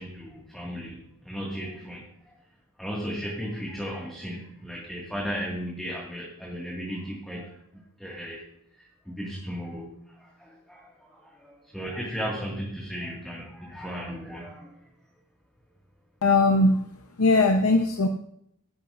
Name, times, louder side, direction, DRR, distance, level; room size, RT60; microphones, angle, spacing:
voice 1, 0.0-2.3 2.8-7.6 8.0-8.4 8.8-14.7, equal, ahead, -4 dB, 2.0 m, -36 dB
voice 2, 16.2-16.8 17.2-18.1, left 2 dB, 80° left, 3 dB, 0.9 m, -20 dB
16.5 x 10.5 x 2.6 m, 0.73 s
head